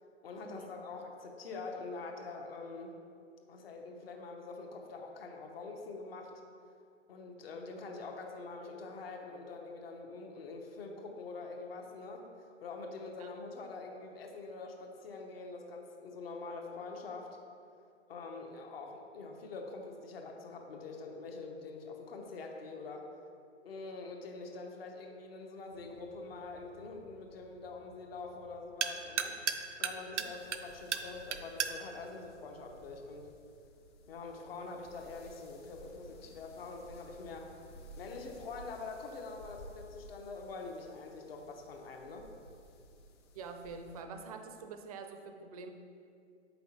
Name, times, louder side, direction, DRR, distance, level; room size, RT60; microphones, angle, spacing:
voice 1, 0.2-2.9 3.5-6.3 7.1-12.3 12.6-17.3 18.1-23.1 23.6-29.4 29.8-33.3 34.1-37.5 38.0-42.3, left 3 dB, 55° left, 2 dB, 1.0 m, -45 dB
sound 1, 25.7-33.3, right 7 dB, 75° right, 0.6 m, -40 dB
sound 2, 30.2-44.0, equal, 25° left, 0.4 m, -56 dB
voice 2, 43.3-45.7, right 4 dB, 30° right, 6 dB, 0.5 m, -46 dB
7.7 x 5.6 x 2.9 m, 2.4 s
figure-of-eight pair, 125°, 36 cm